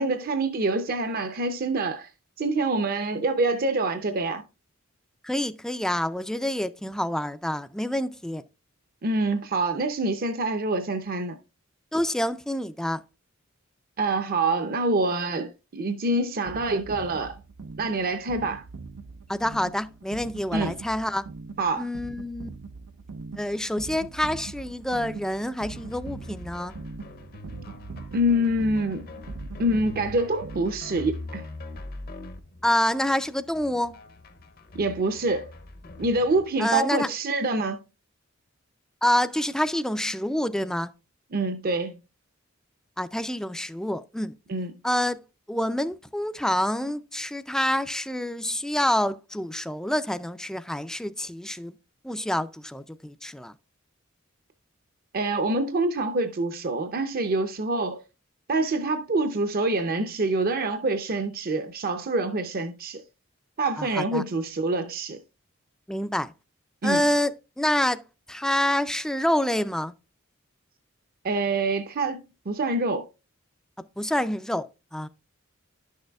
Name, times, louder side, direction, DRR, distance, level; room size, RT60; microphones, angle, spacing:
voice 1, 0.0-2.1 2.4-4.4 9.0-11.4 14.0-17.4 17.8-18.6 20.5-20.7 21.6-21.9 28.1-29.1 29.6-31.5 34.7-35.5 36.0-37.8 41.3-41.9 44.5-44.7 55.1-58.0 58.5-63.0 63.6-65.2 66.8-67.0 71.2-73.1, right 2 dB, 45° right, 0.6 m, -26 dB
voice 2, 5.2-8.4 11.9-13.0 19.3-21.2 21.8-22.5 23.4-26.7 32.6-33.9 36.6-37.1 39.0-40.9 43.0-44.3 44.8-45.2 45.5-51.7 52.0-53.5 63.8-64.2 65.9-66.3 66.8-67.3 67.6-68.0 68.3-69.9 74.0-74.6 74.9-75.1, left 1 dB, 5° left, 0.3 m, -27 dB
sound 1, 16.5-31.1, right 4 dB, 90° right, 0.5 m, -42 dB
sound 2, 25.6-36.5, left 2 dB, 45° left, 0.7 m, -42 dB
11.0 x 6.5 x 2.3 m
head